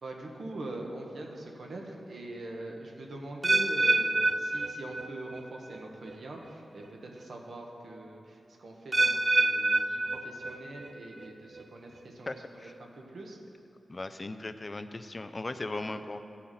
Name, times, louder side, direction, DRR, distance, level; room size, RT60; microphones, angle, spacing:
voice 1, 0.0-13.4 15.7-15.8, right 2 dB, 70° right, 0 dB, 1.2 m, -43 dB
sound 1, 3.4-5.4 5.7-6.1 6.8-6.9 8.9-10.9 11.2-11.6 12.3-12.4, right 2 dB, 30° right, 0.4 m, -27 dB
voice 2, 12.3-12.7 13.9-16.2, left 2 dB, 30° left, 9 dB, 0.4 m, -38 dB
15.0 x 5.7 x 4.2 m, 2.8 s
wide cardioid pair, 85°, 0 cm